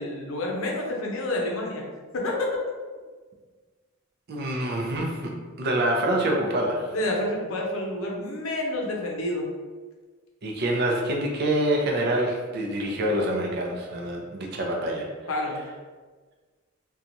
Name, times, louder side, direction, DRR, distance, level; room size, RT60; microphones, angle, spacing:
voice 1, 0.0-1.8 2.1-2.5 6.9-9.5 15.3-15.6, left 1 dB, 85° left, -1 dB, 0.6 m, -29 dB
voice 2, 4.3-6.9 10.4-15.0, right 1 dB, 50° right, 0 dB, 0.5 m, -26 dB
2.8 x 2.3 x 2.6 m, 1.4 s
head